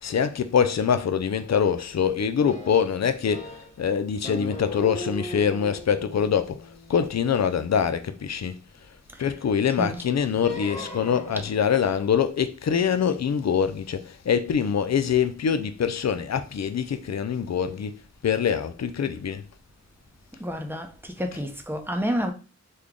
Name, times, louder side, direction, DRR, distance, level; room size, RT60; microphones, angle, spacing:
voice 1, 0.0-8.5 9.2-17.9 18.2-19.4, left 7 dB, 60° left, 0.4 m, -24 dB
sound 1, 2.5-3.8 4.2-8.5 10.4-11.7, equal, 25° left, 0.9 m, -39 dB
voice 2, 20.4-22.3, equal, 5° right, 0.7 m, -29 dB
3.2 x 2.2 x 3.7 m
wide cardioid pair, 40°, 30 cm